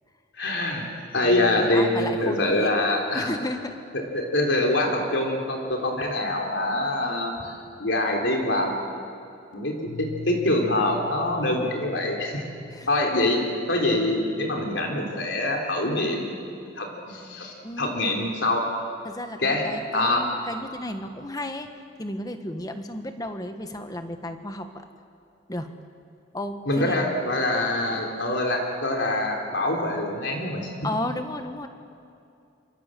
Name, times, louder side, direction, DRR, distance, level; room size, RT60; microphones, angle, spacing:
voice 1, 0.4-0.9 1.1-3.3 4.1-7.5 7.8-8.8 9.5-12.4 12.9-16.3 16.6-18.6 19.4-19.7 19.9-20.3 26.7-30.7, left 1 dB, 70° left, 1 dB, 3.6 m, -25 dB
voice 2, 1.2-2.8 3.1-3.8 12.7-12.9 17.6-18.0 19.0-21.7 22.0-24.7 25.5-25.7 26.3-27.0 30.8-31.7, left 1 dB, 20° left, 7 dB, 1.5 m, -33 dB
Piano, 9.9-15.5, left 5 dB, 50° left, 1.8 m, -44 dB
26.5 x 25.5 x 7.7 m, 2.5 s
head